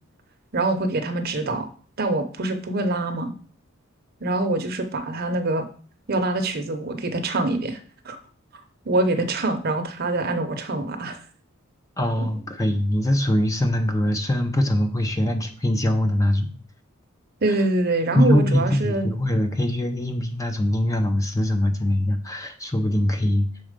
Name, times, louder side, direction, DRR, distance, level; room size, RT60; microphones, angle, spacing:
voice 1, 0.5-1.7 2.0-3.3 4.2-5.6 6.1-8.2 8.8-11.2 17.4-19.1, right 2 dB, 50° right, 7 dB, 0.8 m, -24 dB
voice 2, 12.0-16.5 18.1-23.5, left 1 dB, 15° left, 5 dB, 0.7 m, -22 dB
6.3 x 4.1 x 5.1 m, 0.43 s
head